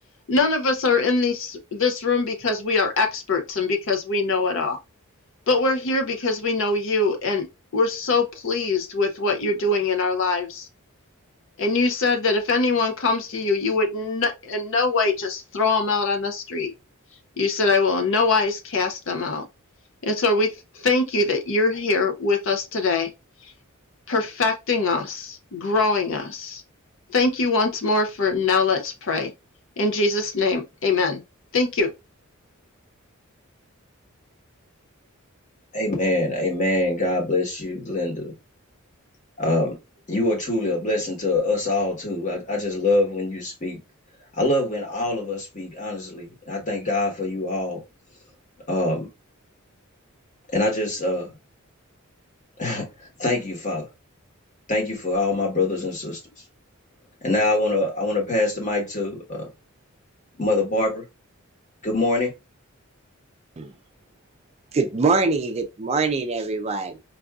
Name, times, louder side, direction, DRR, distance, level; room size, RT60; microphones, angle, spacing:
voice 1, 0.3-4.8 5.5-7.5 7.7-10.7 11.6-16.7 17.4-19.4 20.0-20.5 20.7-23.1 24.1-26.6 27.1-29.3 29.8-31.2 31.5-31.9, left 3 dB, 60° left, 0.5 m, -23 dB
voice 2, 35.7-38.3 39.4-39.8 40.1-43.8 44.4-47.8 48.7-49.1 50.5-51.3 52.6-52.9 53.2-53.9 54.7-56.2 57.2-59.5 60.4-61.0 61.8-62.3, left 2 dB, 35° left, 1.1 m, -24 dB
voice 3, 64.7-67.0, right 4 dB, 30° right, 0.4 m, -23 dB
4.5 x 2.5 x 2.3 m
head